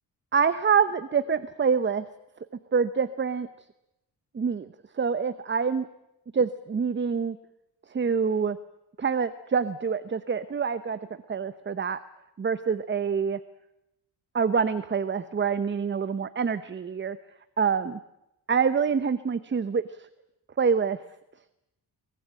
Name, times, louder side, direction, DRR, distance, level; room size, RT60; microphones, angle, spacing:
voice 1, 0.3-2.1 2.7-3.5 4.3-4.7 4.9-5.9 6.3-7.4 7.9-8.6 9.0-11.0 11.3-12.0 12.4-13.4 14.3-17.2 17.6-18.0 18.5-20.0 20.6-21.0, right 6 dB, 30° right, 13 dB, 0.9 m, -26 dB
23.5 x 21.0 x 8.8 m, 0.87 s
wide cardioid pair, 175°, 40 cm